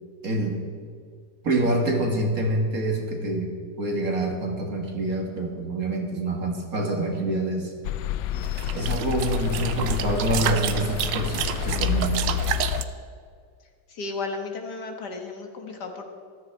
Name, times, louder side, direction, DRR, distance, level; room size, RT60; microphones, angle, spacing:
voice 1, 0.2-0.6 1.4-3.5 3.8-7.7 8.7-12.2, right 1 dB, 50° right, 2 dB, 2.1 m, -26 dB
sound 1, 7.8-12.8, left 10 dB, 85° left, 1.4 m, -29 dB
sound 2, 8.4-12.8, right 10 dB, 75° right, 1.3 m, -30 dB
voice 2, 13.9-16.0, left 3 dB, 60° left, 3 dB, 1.9 m, -34 dB
14.5 x 13.0 x 4.6 m, 2.1 s
omnidirectional pair, 2.0 m